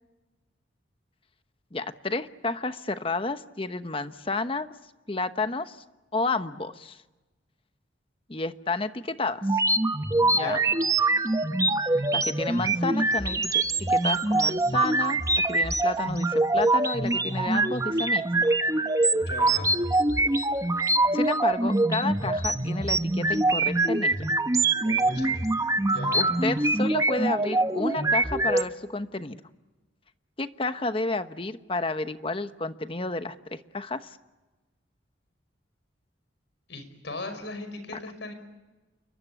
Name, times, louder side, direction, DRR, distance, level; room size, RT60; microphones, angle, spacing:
voice 1, 1.7-4.7 5.1-5.8 6.1-7.0 8.3-9.6 10.3-10.6 12.1-15.2 15.5-18.5 21.1-24.3 26.1-29.4 30.4-34.2, left 3 dB, 30° left, 10 dB, 1.0 m, -31 dB
sound 1, 9.4-28.6, right 2 dB, 20° right, 0.9 m, -24 dB
voice 2, 10.3-10.6 19.2-19.7 24.8-25.4 25.9-26.3 36.7-38.3, left 2 dB, 70° left, 8 dB, 5.6 m, -38 dB
29.0 x 23.0 x 8.5 m, 1.1 s
head